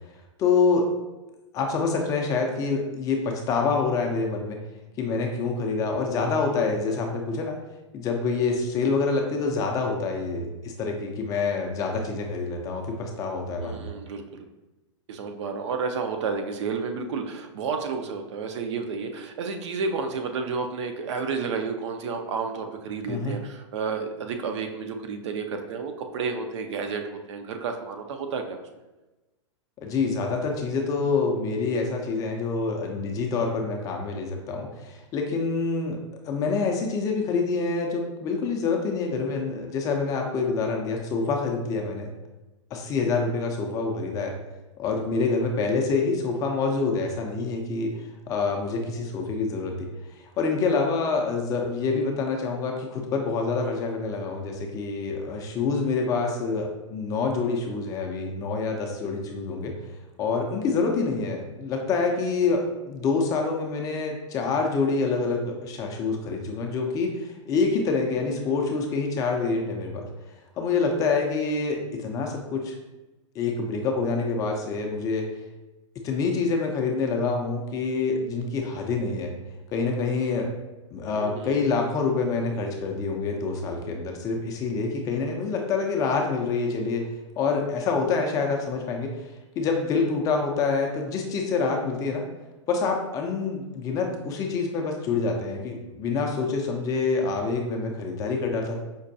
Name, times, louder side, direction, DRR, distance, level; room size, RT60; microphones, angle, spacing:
voice 1, 0.4-0.8 1.5-4.6 5.0-7.6 7.9-13.9 23.1-23.4 29.8-36.0 36.3-42.1 42.7-44.3 44.8-47.9 48.3-49.9 50.2-59.7 60.2-70.1 70.6-72.8 73.4-75.3 76.0-79.3 79.7-80.5 80.9-87.1 87.4-89.1 89.6-92.2 92.7-98.8, left 4 dB, 20° left, 2 dB, 0.4 m, -26 dB
voice 2, 13.5-14.4 15.1-28.6 81.1-81.6, right 5 dB, 65° right, 5 dB, 0.5 m, -31 dB
5.2 x 2.2 x 2.6 m, 1.1 s
hypercardioid pair, 140°, 16 cm